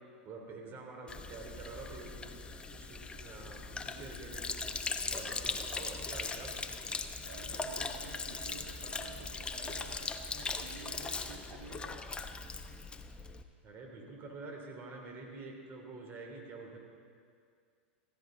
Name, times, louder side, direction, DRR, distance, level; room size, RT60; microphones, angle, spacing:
voice 1, 0.2-2.2 2.7-4.4 5.1-6.6 13.6-16.8, right 3 dB, 35° right, 1 dB, 3.1 m, -47 dB
Sink (filling or washing), 1.1-13.4, left 4 dB, 15° left, 0.8 m, -40 dB
voice 2, 7.2-12.0, right 4 dB, 85° right, 1 dB, 1.5 m, -51 dB
16.0 x 15.0 x 3.9 m, 2.2 s
hypercardioid pair, 105°, 6 cm